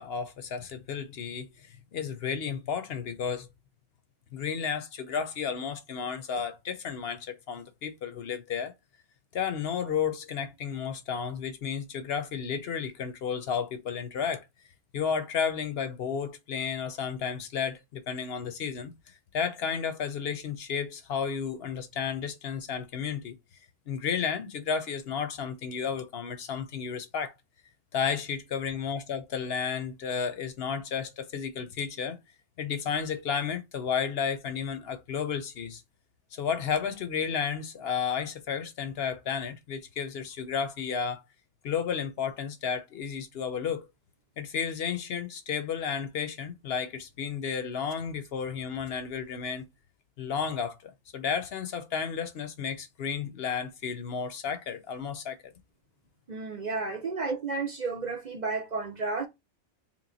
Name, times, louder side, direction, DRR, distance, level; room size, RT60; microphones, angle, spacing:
voice 1, 0.0-3.5 4.3-8.7 9.3-14.4 14.9-18.9 19.3-23.4 23.9-27.3 27.9-32.2 32.6-35.8 36.3-41.2 41.6-43.9 44.4-49.6 50.2-55.5 56.9-57.0, left 7 dB, 65° left, 0.8 m, -32 dB
voice 2, 56.3-59.3, right 4 dB, 45° right, 0.6 m, -32 dB
3.2 x 3.0 x 3.8 m
omnidirectional pair, 1.2 m